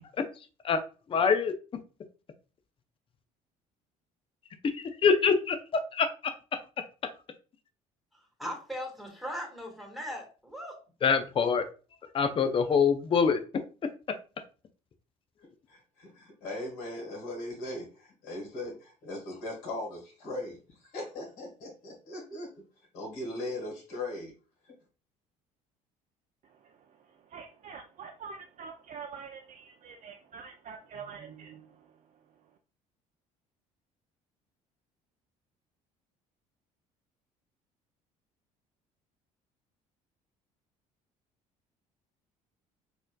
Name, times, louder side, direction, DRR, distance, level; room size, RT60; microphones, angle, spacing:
voice 1, 1.1-1.5 5.0-5.5 6.0-6.1 6.8-6.9 11.0-11.7 12.1-13.6 14.1-14.2, left 6 dB, 30° left, 0.5 m, -24 dB
voice 2, 8.4-10.7, equal, ahead, 1.5 m, -38 dB
voice 3, 15.4-20.6 20.9-22.5 22.9-24.3 24.6-24.7, left 1 dB, 65° left, 1.6 m, -39 dB
voice 4, 26.4-32.6, right 6 dB, 45° right, 0.4 m, -46 dB
4.1 x 2.6 x 2.2 m
hypercardioid pair, 70°, 17 cm